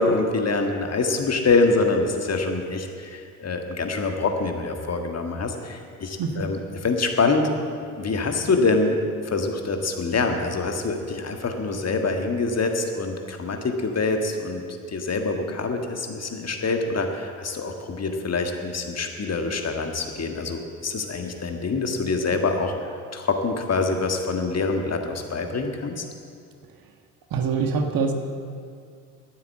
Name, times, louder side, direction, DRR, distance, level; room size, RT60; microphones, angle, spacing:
voice 1, 0.0-7.5 8.0-9.0 9.2-14.6 14.9-22.7 23.1-26.0, left 3 dB, 35° left, 4 dB, 1.8 m, -25 dB
voice 2, 27.3-28.1, right 5 dB, 50° right, 5 dB, 1.6 m, -24 dB
12.0 x 9.6 x 7.8 m, 2.3 s
hypercardioid pair, 55°, 45 cm